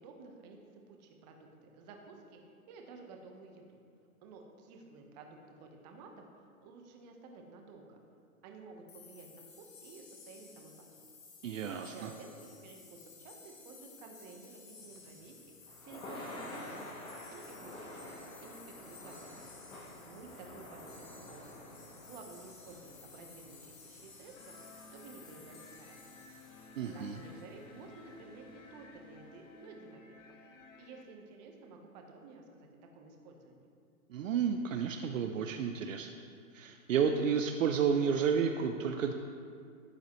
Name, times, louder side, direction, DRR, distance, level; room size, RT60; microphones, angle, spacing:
voice 1, 0.0-3.8 4.2-8.0 8.4-11.1 11.8-15.5 15.8-17.0 17.3-19.4 19.7-21.5 22.0-24.5 24.9-26.0 26.9-30.0 30.8-32.7 32.9-33.7, right 3 dB, 30° right, 2 dB, 1.1 m, -53 dB
sound 1, 8.9-27.6, left 4 dB, 35° left, 2.4 m, -56 dB
voice 2, 11.4-12.1 26.8-27.1 34.1-36.1 36.5-39.1, right 6 dB, 60° right, 5 dB, 0.7 m, -31 dB
Thunder / Rain, 14.9-29.2, left 1 dB, 10° left, 1.1 m, -50 dB
sound 2, 24.4-31.0, left 2 dB, 55° left, 1.3 m, -56 dB
12.0 x 8.3 x 3.1 m, 2.3 s
hypercardioid pair, 150°, 44 cm